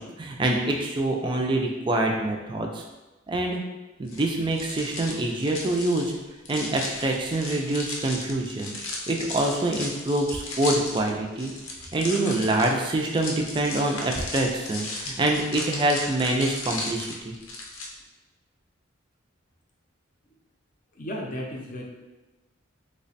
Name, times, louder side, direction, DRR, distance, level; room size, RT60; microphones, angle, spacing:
voice 1, 0.0-2.8 3.3-3.6 4.0-6.2 6.5-8.7 9.1-11.5 11.9-17.3, right 2 dB, 25° right, 1 dB, 0.3 m, -25 dB
sound 1, 4.1-17.9, left 2 dB, 80° left, 0.6 m, -36 dB
voice 2, 20.9-21.8, equal, 40° left, -1 dB, 0.5 m, -34 dB
3.2 x 2.1 x 4.0 m, 1.1 s
head